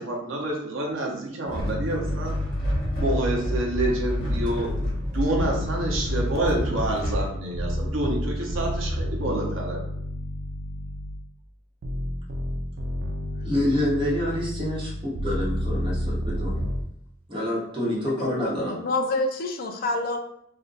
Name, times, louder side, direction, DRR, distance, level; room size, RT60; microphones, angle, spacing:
voice 1, 0.0-2.4 3.0-4.7 5.1-9.8, right 1 dB, 75° right, -1 dB, 0.7 m, -28 dB
sound 1, 1.5-7.3, equal, 25° left, 1.2 m, -29 dB
sound 2, 1.6-3.8 4.2-11.3 11.8-16.8, left 1 dB, 60° right, 0.3 m, -31 dB
voice 2, 13.4-16.6 17.3-18.7, left 1 dB, 25° right, -5 dB, 0.9 m, -27 dB
voice 3, 18.2-20.2, left 2 dB, 45° left, 5 dB, 0.3 m, -28 dB
2.5 x 2.2 x 3.8 m, 0.74 s
head